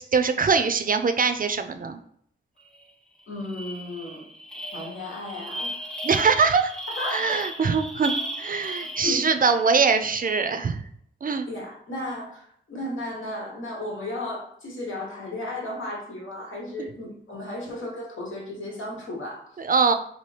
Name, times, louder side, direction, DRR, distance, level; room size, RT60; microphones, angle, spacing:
voice 1, 0.0-2.0 6.0-6.7 7.1-10.8 11.2-11.5 19.6-19.9, right 5 dB, 45° right, 8 dB, 0.4 m, -22 dB
sound 1, 2.8-2.9 3.2-9.6, right 1 dB, 5° left, 0.6 m, -35 dB
voice 2, 3.3-4.3 4.7-5.9 6.9-7.5 9.0-9.3 11.5-19.6, left 1 dB, 85° left, -2 dB, 1.1 m, -34 dB
2.9 x 2.6 x 3.2 m, 0.67 s
wide cardioid pair, 65°, 20 cm